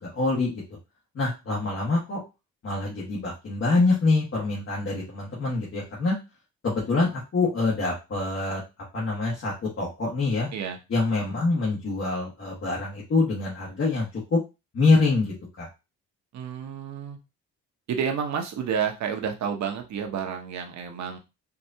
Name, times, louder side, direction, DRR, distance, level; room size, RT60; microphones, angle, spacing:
voice 1, 0.0-0.6 1.1-2.2 2.6-6.2 6.6-8.6 8.9-10.5 10.9-14.4 14.7-15.7, left 3 dB, 45° left, -5 dB, 1.6 m, -25 dB
voice 2, 16.3-17.2 17.9-21.2, right 7 dB, 65° right, 4 dB, 1.0 m, -30 dB
4.7 x 2.5 x 2.7 m, 0.27 s
cardioid pair, 90°, 30 cm